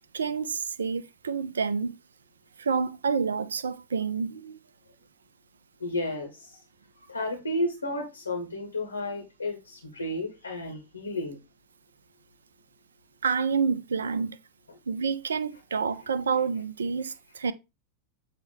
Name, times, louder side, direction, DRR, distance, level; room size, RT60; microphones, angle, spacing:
voice 1, 0.1-2.0 2.6-4.6 13.2-14.4 14.9-17.5, right 5 dB, 70° right, 0.5 m, -28 dB
voice 2, 5.8-6.6 7.1-11.4, left 1 dB, 80° left, 1.5 m, -32 dB
8.0 x 2.9 x 5.0 m
figure-of-eight pair, 90°, 0 cm